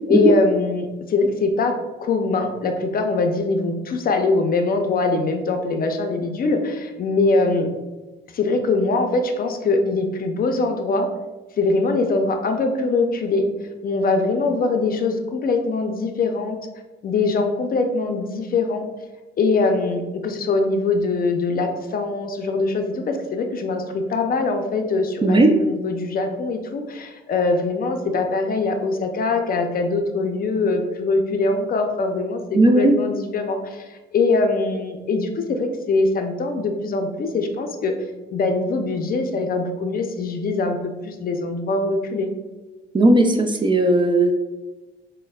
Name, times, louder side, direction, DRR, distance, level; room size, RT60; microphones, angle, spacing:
voice 1, 0.1-7.7 8.3-11.1 11.6-13.4 13.8-16.6 17.0-18.8 19.4-37.9 38.3-42.3, left 3 dB, 50° left, 5 dB, 0.5 m, -22 dB
voice 2, 25.2-25.6 32.5-33.0 42.9-44.3, right 2 dB, 25° right, 5 dB, 0.4 m, -16 dB
6.3 x 2.1 x 2.3 m, 1.2 s
cardioid pair, 90°, 20 cm